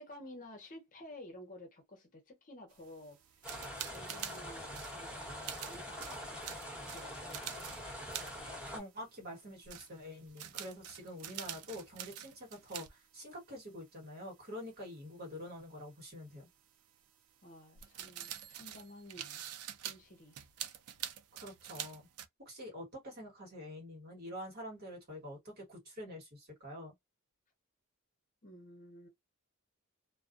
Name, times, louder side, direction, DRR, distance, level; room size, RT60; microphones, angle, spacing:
voice 1, 0.0-3.6 3.9-6.4 6.9-7.8 17.4-19.4 19.8-20.4 28.4-29.1, left 1 dB, 40° left, 0.8 m, -53 dB
sound 1, 2.7-9.3 9.6-12.9 13.2-13.3 15.1-15.2 17.7-22.3, right 10 dB, 80° right, 0.4 m, -46 dB
sound 2, 3.4-8.8, equal, 5° right, 1.2 m, -44 dB
voice 2, 8.6-16.5 21.4-22.1 22.4-26.9, equal, 45° right, 1.4 m, -46 dB
2.3 x 2.3 x 2.5 m
head